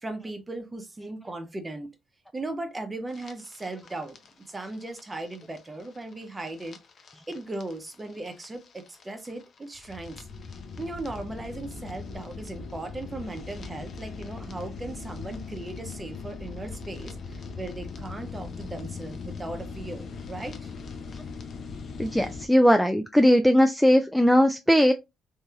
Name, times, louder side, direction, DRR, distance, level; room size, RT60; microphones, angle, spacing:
voice 1, 0.0-1.9 2.3-4.2 4.5-6.8 7.3-10.3 10.8-20.7, right 2 dB, 20° right, 0.7 m, -37 dB
sound 1, 3.1-22.5, left 4 dB, 55° left, 0.5 m, -40 dB
voice 2, 22.0-24.9, equal, ahead, 0.3 m, -19 dB
3.1 x 2.7 x 2.3 m
cardioid pair, 90°, 0 cm